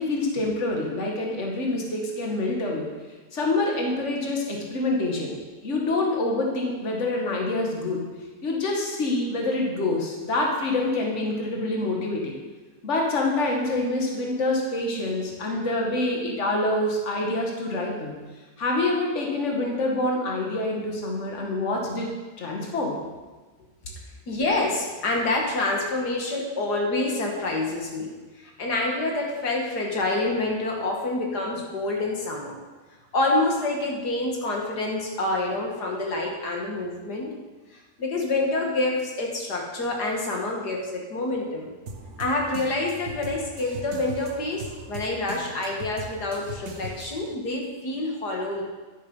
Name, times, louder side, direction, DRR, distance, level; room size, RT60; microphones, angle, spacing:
voice 1, 0.0-2.9 3.3-8.0 8.4-12.4 12.8-18.2 18.6-23.0, left 2 dB, 50° left, 0 dB, 2.0 m, -26 dB
voice 2, 24.3-28.1 28.6-32.6 33.1-37.3 38.0-41.7 42.2-48.6, left 2 dB, 85° left, -1 dB, 2.4 m, -27 dB
sound 1, 41.9-47.3, right 2 dB, 50° right, 1.2 m, -40 dB
11.0 x 8.8 x 5.5 m, 1.3 s
omnidirectional pair, 1.7 m